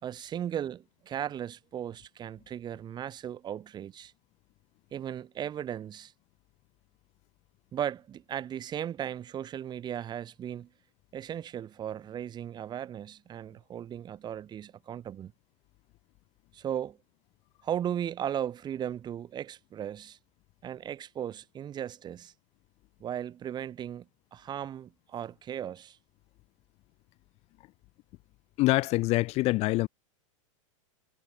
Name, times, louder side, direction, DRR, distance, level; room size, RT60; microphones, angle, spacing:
voice 1, 0.0-4.1 4.9-6.1 7.7-10.7 11.1-15.3 16.5-17.0 17.6-20.2 20.6-22.3 23.0-26.0, right 10 dB, 25° right, 4.1 m, -36 dB
voice 2, 28.6-29.9, left 20 dB, 40° left, 1.4 m, -25 dB
supercardioid pair, 140°, 17 cm